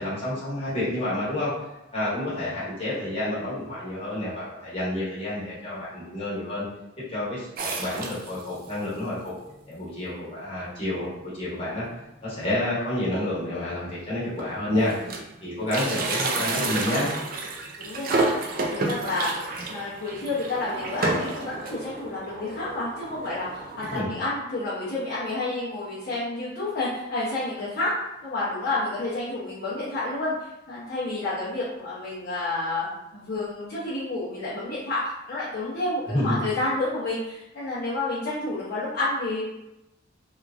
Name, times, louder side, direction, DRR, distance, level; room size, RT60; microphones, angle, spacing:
voice 1, 0.0-1.5 1.9-6.6 7.1-9.3 9.7-11.9 12.2-15.0 15.4-17.1 23.9-24.1 36.1-36.4, left 1 dB, 30° left, -9 dB, 1.0 m, -29 dB
sound 1, 7.6-8.7 9.3-9.4 9.6-9.7 10.5-10.6 11.0-11.2 11.6-11.7 12.9-13.0 13.7-13.8 14.1-15.4 15.6-24.0, right 3 dB, 45° right, 0.3 m, -30 dB
voice 2, 17.8-19.3 19.7-27.9 28.2-39.4, left 2 dB, 50° left, -10 dB, 0.6 m, -30 dB
2.9 x 2.3 x 2.4 m, 0.91 s
head